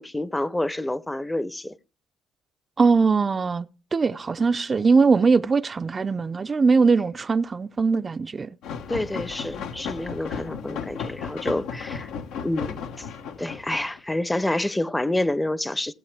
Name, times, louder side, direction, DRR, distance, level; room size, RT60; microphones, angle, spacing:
voice 1, 0.0-1.7 8.9-12.1 12.4-13.1 13.4-15.9, left 1 dB, 10° left, 0.7 m, -28 dB
voice 2, 2.8-3.7 3.9-8.5, right 4 dB, 30° right, 0.5 m, -21 dB
sound 1, 8.6-14.0, left 6 dB, 80° left, 1.0 m, -34 dB
17.0 x 7.8 x 3.4 m
supercardioid pair, 80°, 0 cm